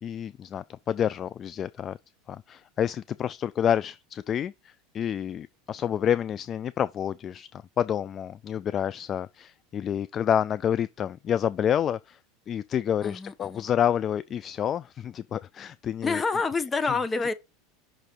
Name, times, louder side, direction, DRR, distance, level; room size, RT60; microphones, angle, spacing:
voice 1, 0.0-2.0 2.3-12.2 12.5-16.2 16.9-17.0, left 9 dB, 35° left, 0.3 m, -28 dB
voice 2, 13.0-13.7 16.0-17.3, left 4 dB, 20° left, 1.0 m, -28 dB
5.8 x 5.0 x 4.5 m
hypercardioid pair, 95°, 0 cm